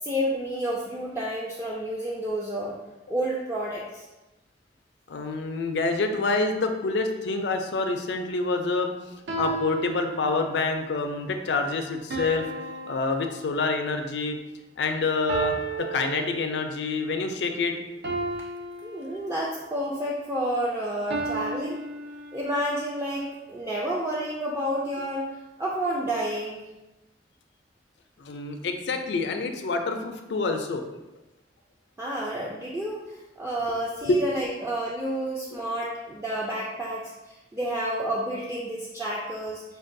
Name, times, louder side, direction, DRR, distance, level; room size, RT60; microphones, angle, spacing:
voice 1, 0.0-2.8 3.1-4.0 18.8-21.8 22.3-25.3 25.6-26.7 32.0-39.6, right 1 dB, 15° right, -5 dB, 0.4 m, -30 dB
voice 2, 5.1-8.9 9.4-12.5 12.9-14.4 14.8-15.5 15.9-17.7 28.2-30.8 34.1-34.2, left 3 dB, 70° left, 5 dB, 0.4 m, -27 dB
sound 1, 7.3-7.7 9.3-10.8 12.1-13.9 15.3-16.9 18.0-19.7 21.1-22.7, right 3 dB, 70° right, 0.6 m, -34 dB
5.2 x 2.3 x 2.6 m, 1.0 s
head